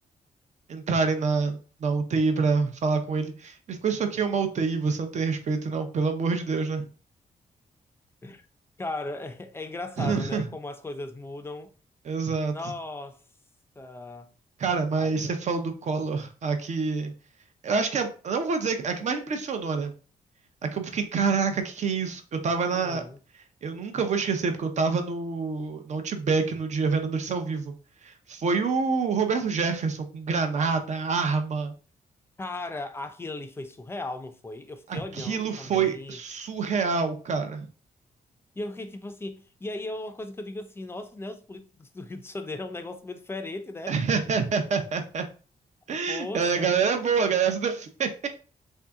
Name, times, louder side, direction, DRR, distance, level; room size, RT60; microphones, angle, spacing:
voice 1, 0.7-6.8 10.0-10.4 12.0-12.5 14.6-17.1 17.6-19.9 20.7-23.0 23.6-27.7 28.0-31.7 34.9-37.7 43.9-45.2 45.9-48.3, right 5 dB, 50° right, 0.7 m, -27 dB
voice 2, 8.8-11.7 12.5-13.2 13.8-14.3 15.0-15.1 22.7-23.2 32.4-36.2 38.6-44.0 46.1-46.7, left 2 dB, 15° left, 0.4 m, -37 dB
3.4 x 2.7 x 3.6 m
wide cardioid pair, 135°, 15 cm